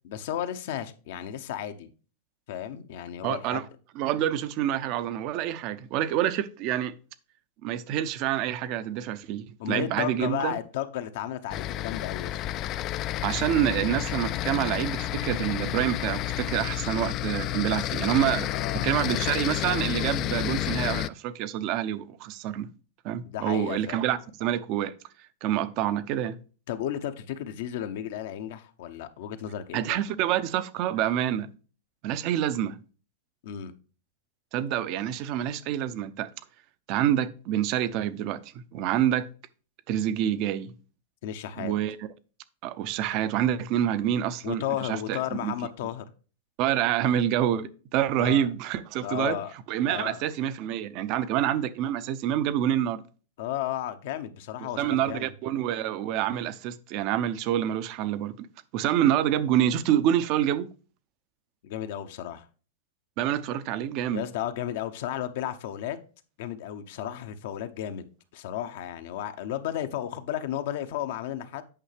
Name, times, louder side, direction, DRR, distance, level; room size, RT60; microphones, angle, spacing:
voice 1, 0.0-1.9 2.5-3.6 9.6-12.4 18.5-19.4 23.2-24.0 26.7-30.0 33.4-33.7 41.2-41.7 44.4-46.1 48.1-48.5 49.0-49.5 49.9-50.2 53.4-55.3 61.6-62.4 64.1-66.0 66.4-68.1 68.3-71.6, left 11 dB, 65° left, 0.8 m, -33 dB
voice 2, 3.2-3.6 4.0-6.9 7.6-10.6 13.2-18.5 18.8-22.7 23.0-24.9 25.4-26.4 29.7-31.5 32.0-32.8 34.5-36.3 36.9-39.3 39.9-40.7 41.6-42.1 42.6-45.5 46.6-49.4 49.7-53.0 54.8-58.5 58.7-60.7 63.2-64.2, right 11 dB, 50° right, 0.6 m, -27 dB
sound 1, 11.5-21.1, left 14 dB, 40° left, 0.3 m, -30 dB
8.9 x 5.5 x 3.3 m
hypercardioid pair, 120°, 0 cm